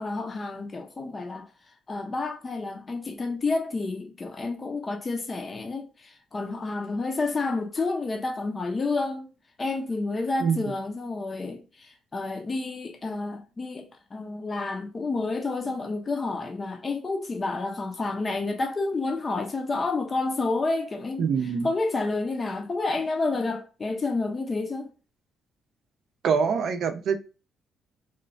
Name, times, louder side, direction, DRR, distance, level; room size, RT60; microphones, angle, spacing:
voice 1, 0.0-9.3 9.6-24.9, left 3 dB, 30° left, 0.5 m, -30 dB
voice 2, 21.2-21.7 26.2-27.2, right 6 dB, 65° right, 0.5 m, -24 dB
3.0 x 2.1 x 2.5 m
cardioid pair, 90°, 0 cm